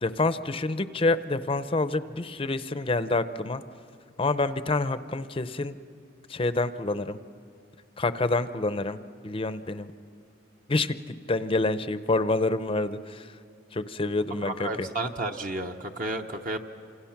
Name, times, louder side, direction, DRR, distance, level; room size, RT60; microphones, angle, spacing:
voice 1, 0.0-3.6 4.2-5.8 6.3-7.2 8.0-9.0 9.2-9.9 10.7-13.3 13.7-14.9, left 2 dB, 30° left, 12 dB, 0.6 m, -27 dB
voice 2, 14.4-16.6, right 2 dB, 45° right, 4 dB, 1.0 m, -32 dB
28.5 x 27.0 x 5.9 m, 2.2 s
head